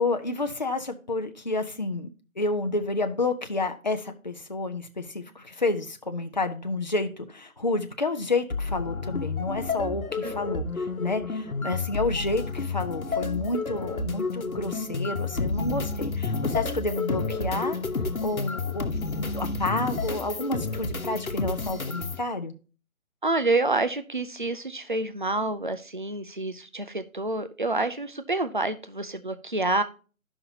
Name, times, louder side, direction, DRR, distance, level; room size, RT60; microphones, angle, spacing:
voice 1, 0.0-2.1 2.4-17.8 18.2-22.5, left 2 dB, 35° left, 0.6 m, -30 dB
sound 1, 8.5-22.2, left 4 dB, 75° left, 1.2 m, -30 dB
voice 2, 23.2-29.8, right 2 dB, 40° right, 0.5 m, -28 dB
13.0 x 5.7 x 2.8 m
figure-of-eight pair, 155°, 42 cm